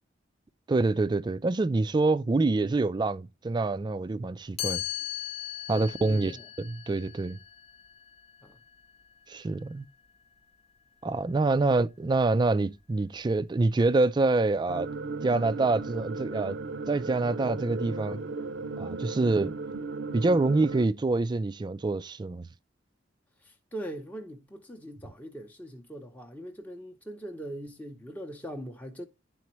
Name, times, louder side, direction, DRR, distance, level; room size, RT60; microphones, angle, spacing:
voice 1, 0.7-4.8 5.7-6.3 6.6-7.4 9.3-9.9 11.0-14.9 15.2-16.6 16.9-18.2 18.8-19.6 20.1-22.5, right 3 dB, 25° right, 0.3 m, -26 dB
Chime, 4.6-10.4, left 13 dB, 35° left, 0.9 m, -39 dB
voice 2, 5.7-6.5 8.4-8.6 18.1-18.3 23.4-29.1, right 1 dB, 10° left, 0.7 m, -41 dB
sound 1, 14.7-20.9, right 3 dB, 75° right, 0.5 m, -36 dB
10.5 x 4.2 x 3.0 m
head